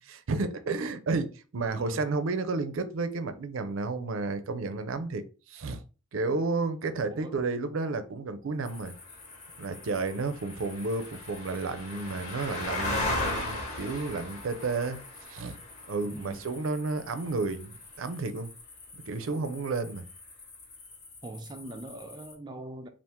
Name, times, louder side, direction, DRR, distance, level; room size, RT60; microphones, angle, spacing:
voice 1, 0.0-5.8 6.1-8.9 9.6-15.0 15.3-15.6 15.9-18.5 19.1-20.0, right 3 dB, 75° right, 0.5 m, -32 dB
voice 2, 7.1-7.4 16.0-16.4 21.2-22.9, right 1 dB, 20° right, 0.4 m, -41 dB
sound 1, 8.6-22.3, left 2 dB, 35° left, 1.0 m, -39 dB
3.5 x 2.5 x 4.3 m
head